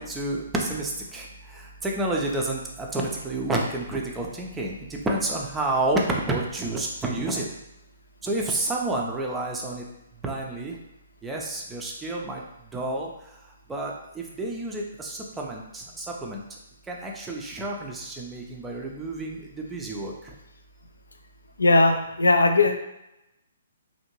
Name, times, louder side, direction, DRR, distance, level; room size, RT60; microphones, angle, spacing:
voice 1, 0.0-7.5 8.2-9.8 10.2-10.8 11.2-12.4 12.7-13.1 13.7-16.4 16.9-20.3, right 2 dB, 10° right, -1 dB, 0.4 m, -29 dB
voice 2, 21.6-22.8, left 2 dB, 75° left, 6 dB, 0.3 m, -19 dB
2.8 x 2.6 x 2.8 m, 0.88 s
figure-of-eight pair, 125°, 0 cm